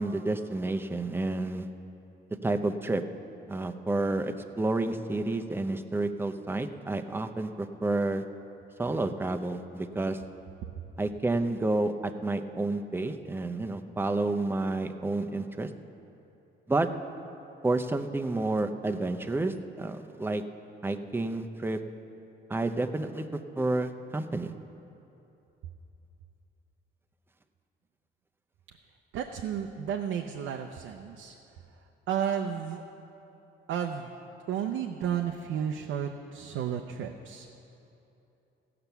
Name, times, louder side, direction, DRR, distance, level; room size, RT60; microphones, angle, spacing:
voice 1, 0.0-1.7 2.4-3.0 3.5-8.2 8.8-10.2 11.0-15.7 16.7-16.9 17.6-20.4 20.8-21.8 22.5-24.5, right 2 dB, 10° right, 6 dB, 0.6 m, -30 dB
voice 2, 29.1-31.4 32.1-32.8 33.7-34.1 34.5-37.5, right 8 dB, 85° right, 3 dB, 0.6 m, -32 dB
16.5 x 5.9 x 6.8 m, 2.9 s
cardioid pair, 90°, 20 cm